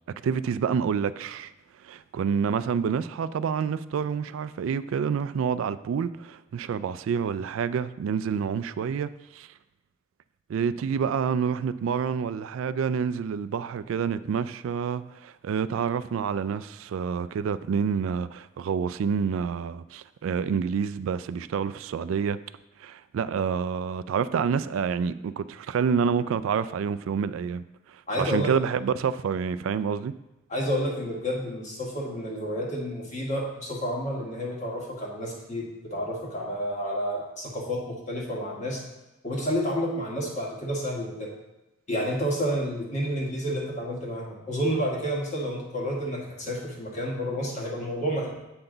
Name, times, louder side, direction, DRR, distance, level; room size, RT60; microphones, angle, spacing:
voice 1, 0.2-1.5 1.8-9.5 10.5-22.4 22.8-30.1, right 6 dB, 80° right, 0.3 m, -28 dB
voice 2, 28.1-28.5 30.5-38.8 39.2-41.3 41.9-48.3, equal, 35° left, 1.7 m, -30 dB
7.9 x 5.9 x 3.9 m
head